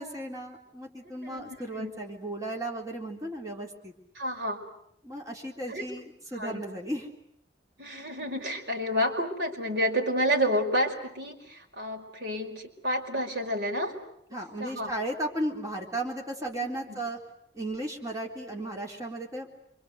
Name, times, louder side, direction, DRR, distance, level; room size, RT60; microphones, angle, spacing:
voice 1, 0.0-3.9 5.0-7.1 14.3-17.2 17.5-19.5, right 1 dB, 20° right, -1 dB, 3.8 m, -35 dB
voice 2, 4.1-4.6 5.7-5.8 6.3-6.6 7.8-13.9 14.3-14.9 16.9-17.0, equal, 70° right, 2 dB, 5.1 m, -30 dB
28.0 x 25.5 x 8.1 m, 0.73 s
head